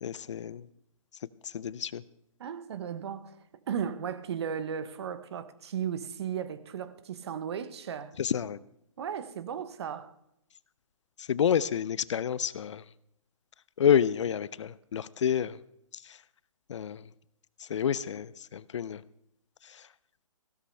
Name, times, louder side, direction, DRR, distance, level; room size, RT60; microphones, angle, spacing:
voice 1, 0.0-0.7 1.4-2.0 8.2-8.6 11.2-12.8 13.8-15.6 15.9-16.2 16.7-17.0 17.6-19.0 19.6-19.9, left 8 dB, 55° left, 0.5 m, -29 dB
voice 2, 2.4-3.4 3.7-8.1 9.0-10.1, right 8 dB, 50° right, 1.0 m, -35 dB
16.0 x 12.5 x 3.3 m
hypercardioid pair, 150°, 18 cm